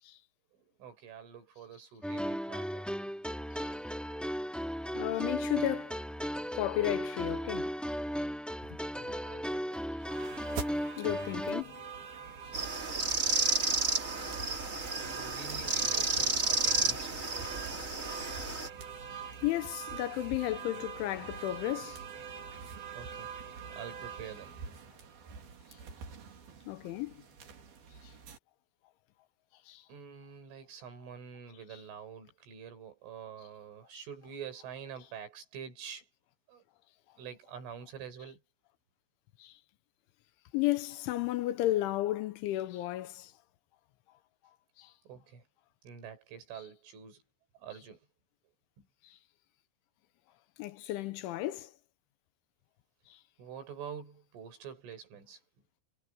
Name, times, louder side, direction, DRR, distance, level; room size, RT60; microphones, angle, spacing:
voice 1, 0.8-2.9 8.9-9.8 10.1-10.2 15.0-17.9 22.9-23.3 23.7-24.6 29.9-36.1 36.5-36.6 37.2-38.4 45.1-45.4 45.8-47.2 47.6-48.0 48.8-48.9 53.4-55.4, right 7 dB, 85° right, 8.1 m, -47 dB
sound 1, 2.0-11.6, equal, ahead, 1.4 m, -36 dB
voice 2, 5.0-6.0 6.6-7.7 11.0-11.8 12.6-12.7 15.0-15.1 19.1-22.0 26.7-27.2 29.7-29.9 31.7-31.8 39.4-39.6 40.5-43.3 44.8-44.9 49.0-49.2 50.6-51.7 53.1-53.2, left 15 dB, 80° left, 3.3 m, -33 dB
sound 2, 10.0-28.4, right 6 dB, 55° right, 5.1 m, -44 dB
sound 3, 12.5-18.7, right 2 dB, 25° right, 2.1 m, -31 dB
omnidirectional pair, 5.5 m